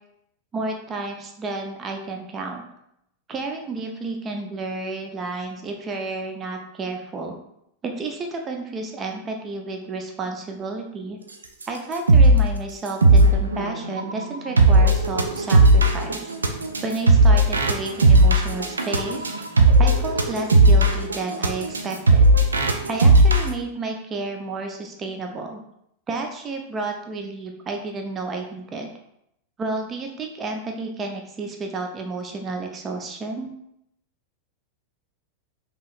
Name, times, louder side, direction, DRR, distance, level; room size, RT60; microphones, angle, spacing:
voice 1, 0.5-2.6 3.3-7.4 7.8-11.2 11.7-16.3 16.8-19.4 19.8-22.3 22.9-25.6 26.1-28.9 29.6-33.5, right 3 dB, 25° right, 3 dB, 0.6 m, -31 dB
sound 1, 11.6-11.7 11.9-12.5 12.9-23.5, right 2 dB, 75° right, 0.5 m, -16 dB
5.4 x 3.0 x 2.5 m, 0.77 s
figure-of-eight pair, 90°, 0 cm